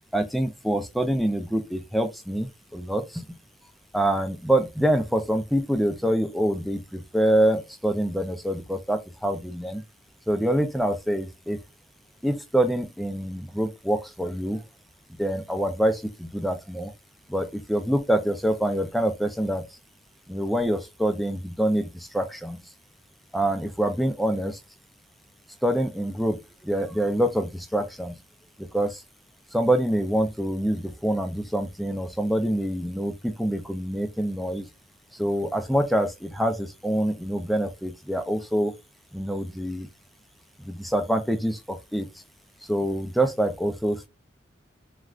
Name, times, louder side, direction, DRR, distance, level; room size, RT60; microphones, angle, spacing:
voice 1, 0.1-3.4 3.9-9.8 10.3-11.6 12.2-14.6 15.2-16.9 17.3-19.6 20.3-22.6 23.3-24.6 25.6-28.2 28.6-29.0 29.5-34.7 35.2-38.7 39.1-39.9 40.6-42.1 42.7-44.1, right 1 dB, ahead, 0.4 m, -26 dB
3.3 x 2.4 x 2.4 m
head